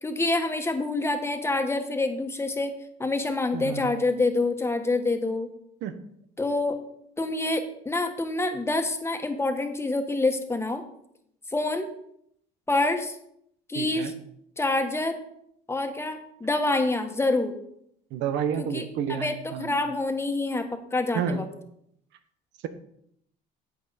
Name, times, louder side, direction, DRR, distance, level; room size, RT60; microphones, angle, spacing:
voice 1, 0.0-2.7 3.0-5.5 6.4-6.8 7.2-10.8 11.5-11.9 12.7-13.2 13.7-14.1 14.6-15.2 15.7-17.5 18.6-21.5, left 2 dB, 15° left, 5 dB, 1.6 m, -27 dB
voice 2, 3.5-3.9 5.8-6.0 13.7-14.1 18.1-19.9 21.1-21.5, right 7 dB, 75° right, 10 dB, 1.3 m, -30 dB
11.5 x 8.4 x 4.3 m, 0.72 s
cardioid pair, 100°, 19 cm